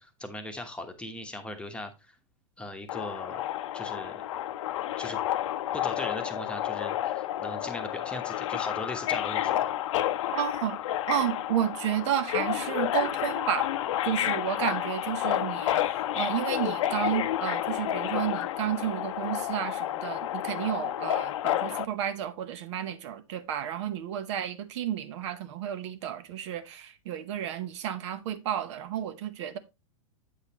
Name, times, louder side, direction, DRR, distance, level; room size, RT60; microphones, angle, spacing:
voice 1, 0.0-2.2 2.6-3.4 3.7-4.2 5.0-5.2 5.7-9.7, left 1 dB, 5° left, 1.0 m, -39 dB
Subway metro underground, 2.9-21.8, left 12 dB, 70° left, 0.7 m, -30 dB
voice 2, 10.3-10.8 11.1-13.7 14.0-29.6, right 10 dB, 60° right, 0.9 m, -32 dB
8.3 x 6.6 x 2.9 m
hypercardioid pair, 135°, 17 cm